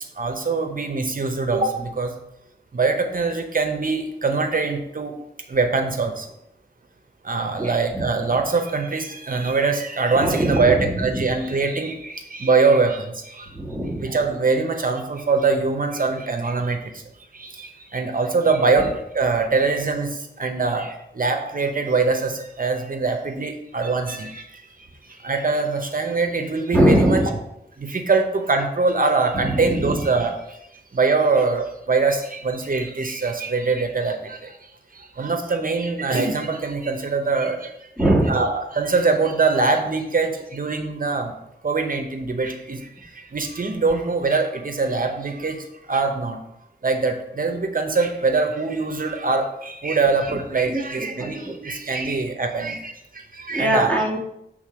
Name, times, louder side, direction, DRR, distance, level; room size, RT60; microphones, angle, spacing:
voice 1, 0.1-2.1 2.7-5.1 5.5-6.3 7.2-13.5 14.0-17.0 17.3-27.2 27.8-37.9 38.3-41.3 41.6-46.4 46.8-54.0, right 4 dB, 50° right, 4 dB, 0.8 m, -23 dB
voice 2, 7.6-8.0 10.1-11.2 13.5-14.1 26.7-27.4 29.4-30.0 38.0-38.4 50.7-51.5 53.5-54.2, right 1 dB, 5° left, -2 dB, 1.8 m, -22 dB
6.4 x 3.7 x 6.2 m, 0.81 s
wide cardioid pair, 80°, 19 cm